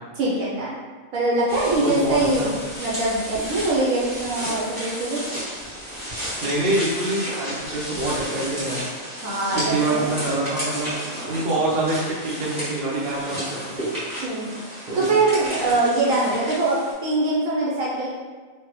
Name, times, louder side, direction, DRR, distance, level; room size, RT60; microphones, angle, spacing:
voice 1, 0.2-0.7 1.1-5.2 9.2-10.1 11.5-11.6 14.2-14.5 14.9-18.1, right 2 dB, 75° right, -6 dB, 1.0 m, -23 dB
sound 1, 1.5-16.9, equal, 30° right, 1.6 m, -32 dB
voice 2, 1.8-2.5 6.4-8.8 9.6-10.9 11.2-13.9 14.9-15.1, right 2 dB, 50° right, -6 dB, 0.9 m, -25 dB
3.3 x 2.2 x 3.0 m, 1.4 s
omnidirectional pair, 1.5 m